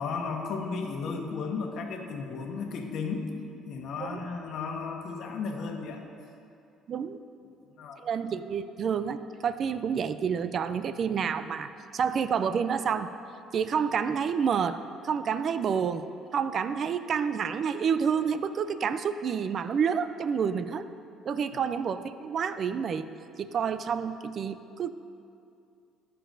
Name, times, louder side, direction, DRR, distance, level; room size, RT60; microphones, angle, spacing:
voice 1, 0.0-3.3 3.7-6.0 7.4-8.0 21.5-21.6, left 4 dB, 65° left, 2 dB, 1.1 m, -34 dB
voice 2, 6.9-7.2 8.0-13.1 13.5-16.0 16.3-20.8 21.3-23.1 23.4-24.9, right 7 dB, 45° right, 12 dB, 0.3 m, -29 dB
16.5 x 6.8 x 2.6 m, 2.6 s
cardioid pair, 105°, 0 cm